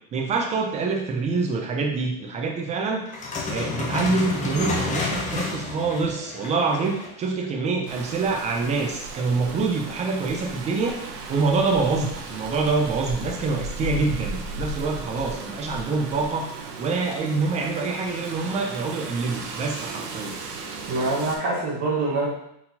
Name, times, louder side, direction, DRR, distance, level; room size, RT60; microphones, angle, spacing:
voice 1, 0.1-3.0 3.5-11.0 11.3-16.5 16.8-20.4, right 4 dB, 15° right, 1 dB, 0.3 m, -26 dB
sound 1, 3.1-7.2, left 3 dB, 15° left, 0.6 m, -30 dB
Rain, 7.9-21.4, right 2 dB, 75° right, 0.9 m, -36 dB
voice 2, 20.9-22.3, right 2 dB, 35° right, -5 dB, 1.3 m, -25 dB
4.2 x 3.9 x 2.7 m, 0.76 s
supercardioid pair, 125°, 48 cm